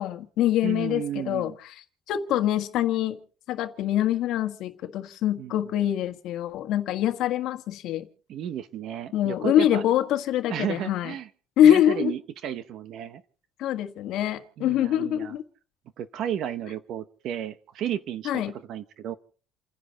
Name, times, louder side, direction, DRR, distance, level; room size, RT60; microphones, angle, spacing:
voice 1, 0.0-3.2 3.5-8.1 9.1-11.1 11.6-12.1 13.6-15.4 18.2-18.5, left 11 dB, 60° left, 1.6 m, -24 dB
voice 2, 0.6-1.6 5.4-5.5 8.3-9.8 10.5-11.3 11.6-13.2 14.6-15.4 16.0-19.1, right 10 dB, 50° right, 0.9 m, -33 dB
29.5 x 10.5 x 4.1 m
cardioid pair, 160°, 0 cm